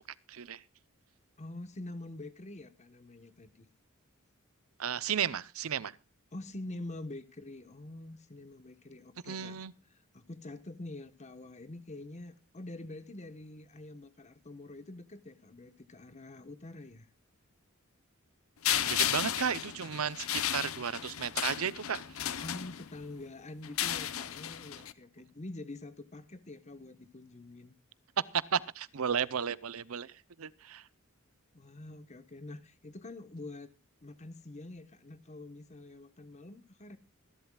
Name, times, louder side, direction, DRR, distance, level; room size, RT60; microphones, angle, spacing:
voice 1, 0.3-0.6 4.8-5.9 9.3-9.7 18.7-22.0 28.5-30.1 30.4-30.8, right 7 dB, 85° right, 0.7 m, -34 dB
voice 2, 1.4-3.7 6.3-9.6 10.1-17.1 22.4-27.7 31.5-33.7 34.0-37.0, left 2 dB, 35° left, 1.2 m, -46 dB
sound 1, 18.6-23.1 23.6-24.9, left 11 dB, 80° left, 0.9 m, -34 dB
25.0 x 11.5 x 2.3 m
head